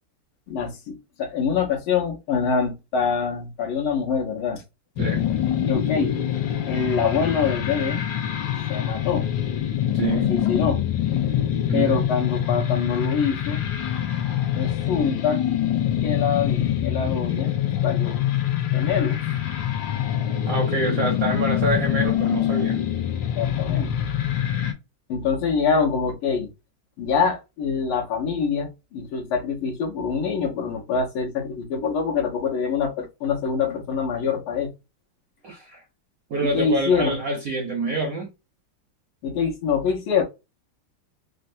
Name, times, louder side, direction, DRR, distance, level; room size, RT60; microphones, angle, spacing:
voice 1, 0.5-4.6 5.6-6.2 6.7-8.1 8.7-9.3 10.1-10.8 11.7-13.6 14.5-15.4 16.0-17.5 17.8-18.2 18.7-19.2 23.4-23.9 25.1-26.5 27.0-34.7 36.4-37.2 39.2-40.2, left 6 dB, 90° left, 1.8 m, -25 dB
sound 1, 5.0-24.7, left 11 dB, 70° left, 1.3 m, -25 dB
voice 2, 5.0-5.3 9.9-10.3 11.7-12.1 20.5-22.8 35.4-35.8 36.3-38.3, right 2 dB, 70° right, 0.8 m, -26 dB
4.0 x 2.1 x 2.6 m
omnidirectional pair, 2.3 m